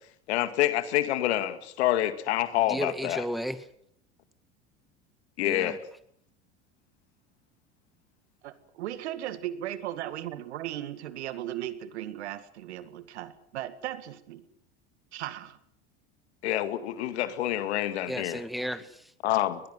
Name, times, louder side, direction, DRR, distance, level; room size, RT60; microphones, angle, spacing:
voice 1, 0.3-3.2 5.4-5.8 16.4-18.4 19.2-19.6, left 13 dB, 80° left, 11 dB, 2.1 m, -27 dB
voice 2, 2.7-3.6 5.4-5.8 18.1-19.1, equal, ahead, 11 dB, 2.1 m, -34 dB
voice 3, 8.4-14.4 15.1-15.6, right 12 dB, 80° right, 12 dB, 2.1 m, -37 dB
21.5 x 21.0 x 8.0 m, 0.68 s
hypercardioid pair, 90°, 33 cm